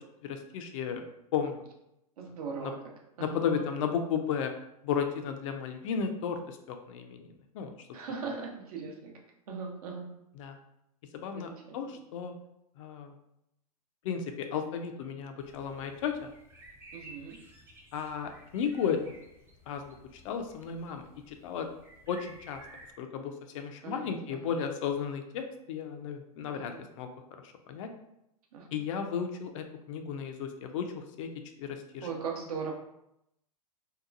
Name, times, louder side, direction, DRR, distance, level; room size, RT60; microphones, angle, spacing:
voice 1, 0.2-1.0 1.3-1.6 2.6-2.7 3.2-4.5 4.8-7.3 7.5-7.7 10.4-10.6 11.1-12.3 12.8-13.1 14.0-16.3 17.9-19.1 19.7-21.7 22.1-22.6 23.0-27.1 27.4-27.9 28.7-31.3 31.6-32.1, left 7 dB, 55° left, 6 dB, 0.4 m, -34 dB
voice 2, 2.2-3.7 7.9-9.1 9.5-10.1 11.3-12.0 16.9-17.4 23.8-24.5 26.5-26.8 28.5-28.7 32.0-32.7, right 5 dB, 70° right, 1 dB, 0.7 m, -39 dB
sound 1, 15.4-22.9, right 1 dB, 10° right, 0.4 m, -54 dB
2.8 x 2.2 x 2.4 m, 0.82 s
hypercardioid pair, 115°, 20 cm